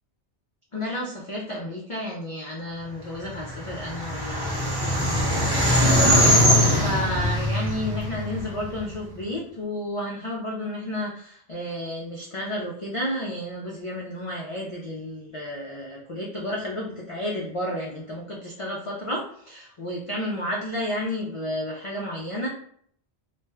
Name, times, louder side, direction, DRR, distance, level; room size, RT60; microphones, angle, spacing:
voice 1, 0.7-22.5, left 1 dB, 55° left, -3 dB, 0.3 m, -32 dB
sound 1, 3.4-8.8, equal, 30° right, 0.5 m, -21 dB
2.5 x 2.1 x 3.3 m, 0.63 s
omnidirectional pair, 1.1 m